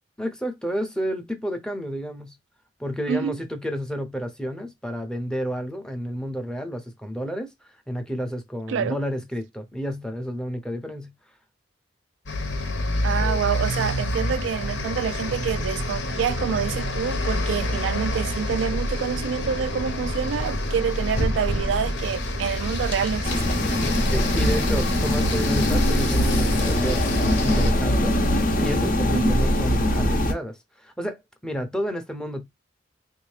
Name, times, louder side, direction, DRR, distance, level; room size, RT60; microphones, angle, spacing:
voice 1, 0.2-2.4 2.8-7.5 7.9-11.1 13.2-13.5 24.0-28.2 28.6-32.4, equal, 5° left, 0.6 m, -31 dB
sound 1, 12.3-27.7, left 1 dB, 80° left, 0.9 m, -27 dB
voice 2, 13.0-23.7 29.1-29.4, right 7 dB, 90° right, 0.3 m, -27 dB
sound 2, 23.2-30.3, left 1 dB, 50° left, 0.7 m, -22 dB
3.6 x 2.7 x 3.2 m
head